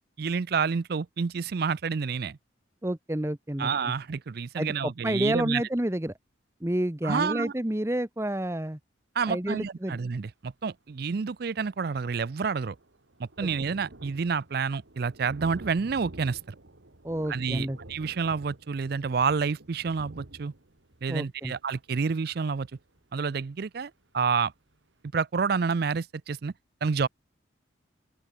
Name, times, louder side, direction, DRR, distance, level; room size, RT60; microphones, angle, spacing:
voice 1, 0.2-2.4 3.6-5.6 7.0-7.5 9.2-12.8 13.2-16.4 17.3-20.5 21.0-22.7 23.1-24.5 25.1-26.5 26.8-27.1, right 5 dB, 50° right, 0.4 m, -29 dB
voice 2, 2.8-3.9 4.6-6.1 6.6-8.8 9.3-10.0 13.4-13.5 17.0-17.8 21.1-21.5, right 1 dB, 15° right, 0.9 m, -29 dB
Thunder, 10.9-11.0 11.2-23.8 24.3-24.4 24.7-24.8, right 1 dB, 70° right, 1.9 m, -49 dB
open air
head